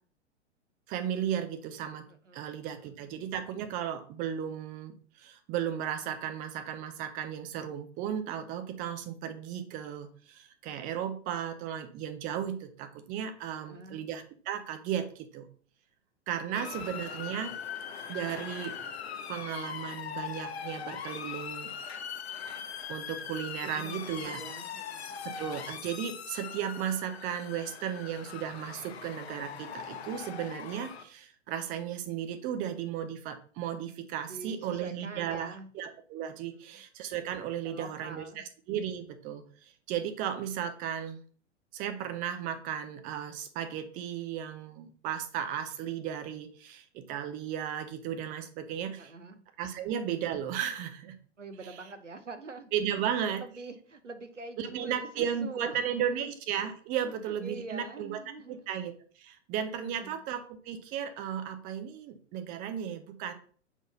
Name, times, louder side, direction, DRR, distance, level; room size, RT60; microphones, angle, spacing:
voice 1, 0.9-2.0 2.3-15.5 16.3-17.6 18.1-18.7 19.3-21.7 22.9-24.4 25.2-41.2 41.7-49.1 49.6-51.1 52.7-53.4 54.6-58.2 58.5-63.3, right 9 dB, 25° right, 9 dB, 0.7 m, -35 dB
voice 2, 2.3-2.9 13.5-14.0 16.5-16.8 23.6-25.4 34.3-35.7 36.5-36.7 37.6-38.5 49.0-49.4 49.7-49.9 51.4-52.7 53.3-56.3 57.0-58.6 59.8-60.2, right 3 dB, 85° right, 9 dB, 1.0 m, -45 dB
Motor vehicle (road) / Siren, 16.5-31.0, left 7 dB, 60° left, 0.9 m, -41 dB
7.1 x 3.9 x 3.9 m, 0.43 s
figure-of-eight pair, 105°, 36 cm